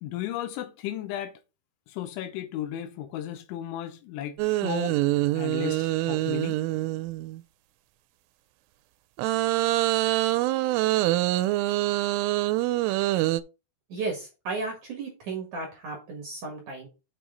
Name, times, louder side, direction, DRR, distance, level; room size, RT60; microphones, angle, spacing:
voice 1, 0.0-1.3 1.9-5.0 5.3-6.6, left 12 dB, 80° left, 3.0 m, -34 dB
sound 1, 4.4-7.4 9.2-13.4, right 17 dB, 85° right, 3.1 m, -25 dB
voice 2, 13.9-16.9, right 3 dB, 60° right, 2.2 m, -34 dB
6.8 x 6.2 x 3.8 m
omnidirectional pair, 5.7 m